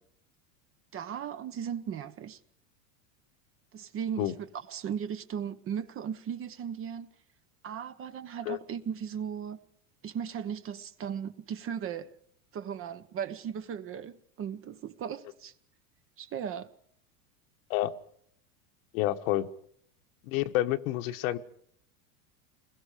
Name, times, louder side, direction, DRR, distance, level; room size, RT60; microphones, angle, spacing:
voice 1, 0.9-2.4 3.7-7.1 7.6-9.6 10.0-12.1 12.5-15.5 16.2-16.7, right 8 dB, 30° right, 1.1 m, -37 dB
voice 2, 18.9-19.5 20.2-21.4, left 14 dB, 65° left, 1.5 m, -28 dB
29.0 x 21.5 x 5.0 m
supercardioid pair, 140°, 44 cm